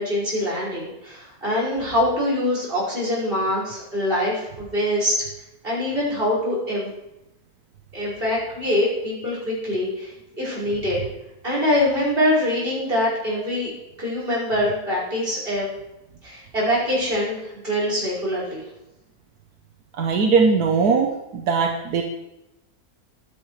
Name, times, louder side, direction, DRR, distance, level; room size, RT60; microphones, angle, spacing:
voice 1, 0.0-5.3 5.6-6.9 7.9-10.1 10.4-11.0 11.4-13.7 14.0-15.6 16.2-17.4 17.6-18.6, left 1 dB, 35° right, -5 dB, 5.6 m, -24 dB
voice 2, 20.0-22.0, right 5 dB, 80° right, 2 dB, 1.5 m, -20 dB
22.0 x 9.9 x 3.2 m, 0.93 s
omnidirectional pair, 1.6 m